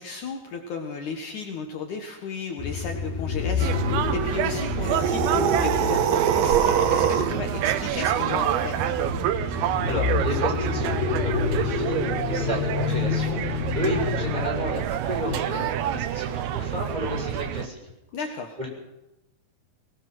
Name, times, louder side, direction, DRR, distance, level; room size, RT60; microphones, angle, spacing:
voice 1, 0.0-8.9 18.1-18.6, left 5 dB, 60° left, 3 dB, 2.8 m, -34 dB
sound 1, 2.6-14.8, left 7 dB, 90° left, 3.2 m, -29 dB
sound 2, 3.6-17.7, right 11 dB, 85° right, 2.9 m, -28 dB
sound 3, 4.8-7.4, right 9 dB, 65° right, 1.8 m, -23 dB
voice 2, 9.5-17.8 18.6-18.7, left 1 dB, 10° right, -1 dB, 6.8 m, -32 dB
23.0 x 20.0 x 6.3 m, 0.95 s
omnidirectional pair, 4.2 m